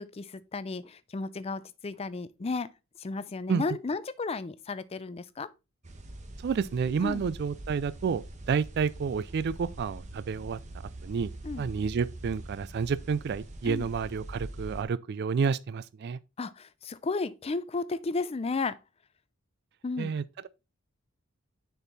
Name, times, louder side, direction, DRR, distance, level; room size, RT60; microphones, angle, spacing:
voice 1, 0.0-2.7 3.0-5.5 7.0-7.3 11.4-11.7 13.6-13.9 16.4-18.8 19.8-20.1, left 3 dB, 30° left, 0.4 m, -33 dB
sound 1, 5.8-14.8, right 1 dB, 35° right, 1.0 m, -43 dB
voice 2, 6.4-8.2 8.5-10.6 11.0-11.3 11.6-16.2 20.0-20.5, right 6 dB, 50° right, 0.3 m, -30 dB
6.6 x 4.7 x 3.9 m
head